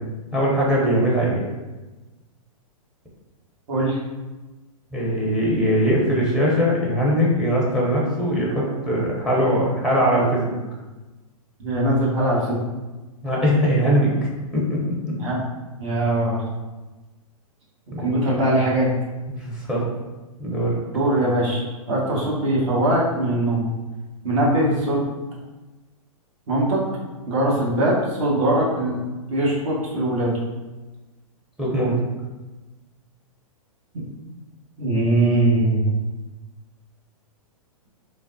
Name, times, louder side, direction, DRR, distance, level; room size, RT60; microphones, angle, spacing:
voice 1, 0.3-1.4 4.9-10.6 13.2-15.1 17.9-18.0 19.4-19.8 20.4-20.8 31.6-31.9, equal, 5° right, -4 dB, 0.6 m, -21 dB
voice 2, 3.7-4.0 11.6-12.6 15.2-15.4 15.8-16.4 18.0-18.9 20.9-23.7 24.2-25.0 26.5-26.8 27.3-29.0 29.3-30.3 33.9-34.0 34.8-35.9, right 1 dB, 55° right, -5 dB, 1.2 m, -21 dB
3.3 x 2.0 x 2.6 m, 1.2 s
hypercardioid pair, 120°, 18 cm